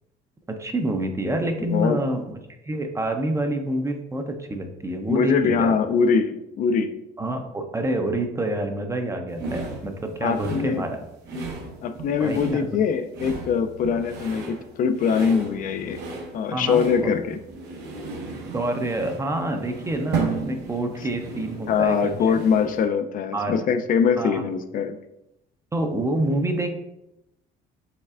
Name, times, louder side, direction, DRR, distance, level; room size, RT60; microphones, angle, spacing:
voice 1, 0.5-2.3 2.7-5.8 7.2-11.0 12.2-12.7 16.5-17.1 18.5-22.3 23.3-23.6 24.2-24.4 25.7-26.8, right 1 dB, 15° right, 5 dB, 0.4 m, -27 dB
voice 2, 5.1-6.9 10.2-10.9 11.8-16.0 16.3-17.4 21.7-25.0, left 6 dB, 55° left, 9 dB, 0.4 m, -22 dB
sound 1, 9.4-22.8, right 4 dB, 80° right, 0.9 m, -34 dB
5.5 x 3.2 x 2.4 m, 0.86 s
cardioid pair, 110°, 17 cm